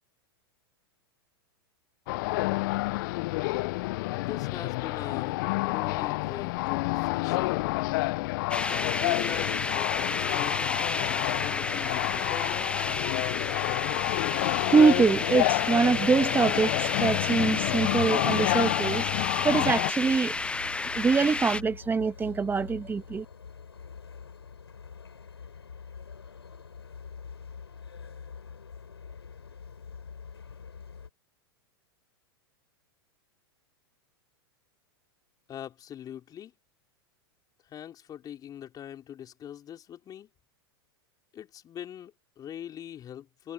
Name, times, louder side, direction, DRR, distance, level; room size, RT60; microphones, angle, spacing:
sound 1, 2.1-19.9, left 22 dB, 55° left, 0.5 m, -29 dB
voice 1, 4.2-7.6 8.7-10.6 10.9-12.8 35.5-36.5 37.7-40.3 41.3-43.5, left 10 dB, 30° left, 4.4 m, -42 dB
sound 2, 8.5-21.6, left 3 dB, 10° left, 0.7 m, -31 dB
voice 2, 14.7-20.3 21.0-23.2, right 5 dB, 15° right, 1.8 m, -24 dB
sound 3, 20.0-31.1, left 6 dB, 90° left, 5.5 m, -45 dB
hypercardioid pair, 100°, 13 cm